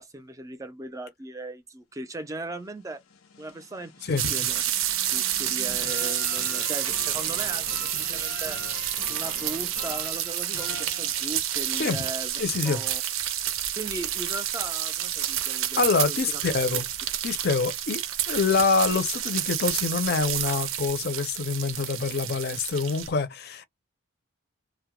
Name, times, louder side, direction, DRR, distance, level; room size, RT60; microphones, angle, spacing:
voice 1, 0.0-3.0 3.4-4.6 5.1-8.6 9.1-13.0 13.8-16.4, right 2 dB, 15° right, 0.4 m, -38 dB
sound 1, 2.6-11.6, left 4 dB, 90° left, 0.6 m, -43 dB
voice 2, 4.0-4.5 11.8-12.0 12.4-12.8 15.8-16.9 17.2-18.0 18.3-23.6, left 4 dB, 50° left, 0.5 m, -26 dB
sound 2, 4.2-23.1, right 11 dB, 75° right, 0.5 m, -29 dB
2.2 x 2.0 x 2.9 m
head